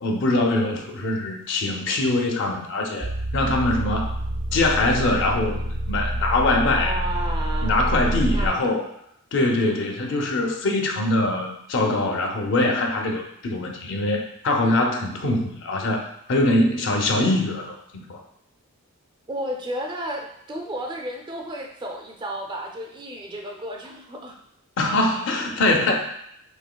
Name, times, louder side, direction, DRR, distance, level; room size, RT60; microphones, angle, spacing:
voice 1, 0.0-4.2 4.5-7.0 7.6-8.9 9.3-18.2 24.8-25.9, left 2 dB, 55° left, 2 dB, 0.6 m, -23 dB
sound 1, 3.0-8.5, right 1 dB, 70° right, 0.5 m, -27 dB
voice 2, 6.8-7.8 8.3-8.6 19.3-24.4, right 1 dB, 20° right, 1 dB, 0.4 m, -32 dB
4.9 x 3.1 x 2.2 m, 0.73 s
head